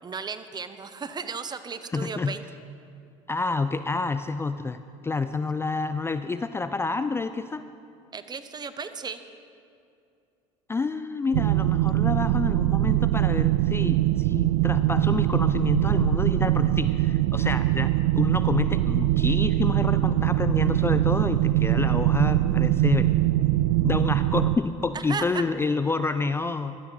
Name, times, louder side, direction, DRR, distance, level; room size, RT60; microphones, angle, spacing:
voice 1, 0.0-2.4 8.1-9.2 24.9-25.4, right 5 dB, 25° right, 11 dB, 0.9 m, -35 dB
voice 2, 1.9-2.4 3.3-7.6 10.7-23.1 23.8-26.8, left 4 dB, 15° left, 11 dB, 0.4 m, -28 dB
sound 1, 11.3-24.6, right 16 dB, 70° right, 0.4 m, -22 dB
16.0 x 13.0 x 4.0 m, 2.5 s
hypercardioid pair, 80°, 16 cm